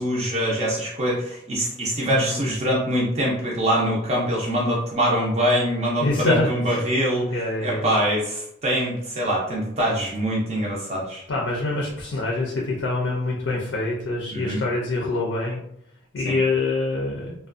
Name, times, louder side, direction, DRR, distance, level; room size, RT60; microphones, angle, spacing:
voice 1, 0.0-7.3 7.6-11.2 14.3-14.6 16.3-16.4, equal, 35° right, -4 dB, 0.4 m, -24 dB
voice 2, 2.1-2.5 6.0-6.5 7.3-8.0 11.3-15.6 16.1-17.3, left 2 dB, 75° left, -2 dB, 0.5 m, -25 dB
2.4 x 2.2 x 2.4 m, 0.72 s
head